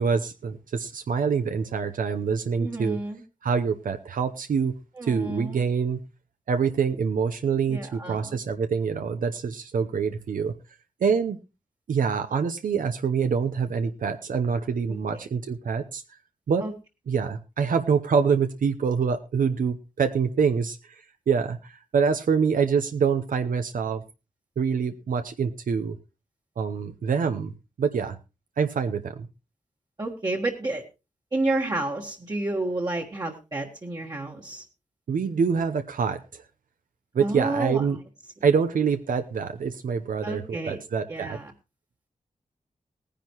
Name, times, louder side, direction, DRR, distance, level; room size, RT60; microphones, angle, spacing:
voice 1, 0.0-3.0 3.4-4.7 5.0-6.0 6.5-10.5 11.0-11.4 11.9-16.0 16.5-16.6 17.1-24.0 24.6-26.0 26.6-27.5 27.8-28.2 28.6-29.3 35.1-36.4 37.1-38.0 38.4-41.4, right 6 dB, 85° right, 8 dB, 0.8 m, -25 dB
voice 2, 2.6-3.2 5.0-5.6 7.7-8.4 16.6-16.7 30.0-30.8 31.3-34.6 37.2-37.8 40.2-40.8 41.1-41.5, right 2 dB, 30° right, -1 dB, 1.5 m, -30 dB
19.0 x 10.0 x 3.0 m, 0.28 s
wide cardioid pair, 145°, 14 cm